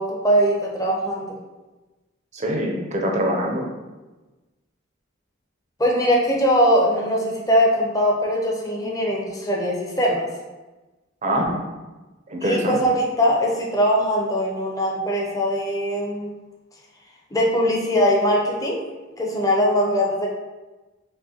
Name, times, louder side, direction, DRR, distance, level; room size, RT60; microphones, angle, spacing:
voice 1, 0.0-1.4 5.8-10.3 12.4-16.3 17.3-18.9 19.2-20.3, equal, 20° left, -3 dB, 0.7 m, -21 dB
voice 2, 2.3-3.7 11.2-11.6 12.3-12.8, equal, 40° right, 1 dB, 0.6 m, -23 dB
5.3 x 2.2 x 2.8 m, 1.1 s
head